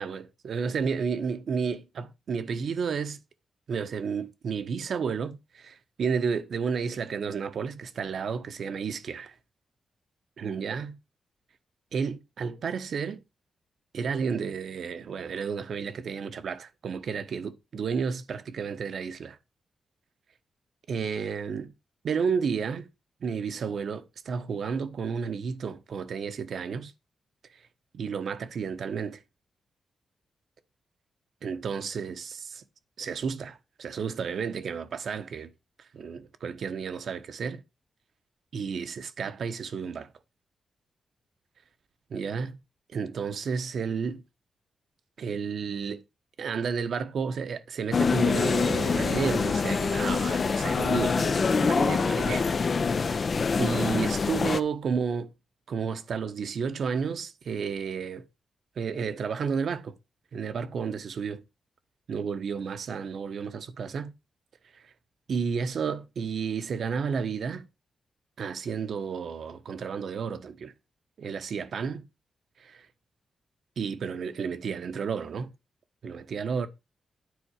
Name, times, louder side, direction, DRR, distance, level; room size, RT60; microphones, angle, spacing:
voice 1, 0.0-3.2 3.7-9.3 10.4-11.0 11.9-13.2 13.9-19.4 20.9-21.7 22.0-22.9 23.2-26.9 27.9-29.2 31.4-32.6 33.0-35.5 35.9-37.6 38.5-40.1 42.1-42.6 42.9-44.2 45.2-46.0 46.4-52.5 53.0-53.3 53.6-55.3 55.7-58.2 58.8-59.9 60.3-61.4 62.1-64.1 65.3-67.7 68.4-70.7 71.2-72.1 72.6-72.8 73.8-75.5 76.0-76.7, right 6 dB, 60° right, 1.1 m, -32 dB
sound 1, 47.9-54.6, left 5 dB, 40° left, 0.6 m, -25 dB
9.7 x 4.3 x 6.5 m
wide cardioid pair, 135°, 0 cm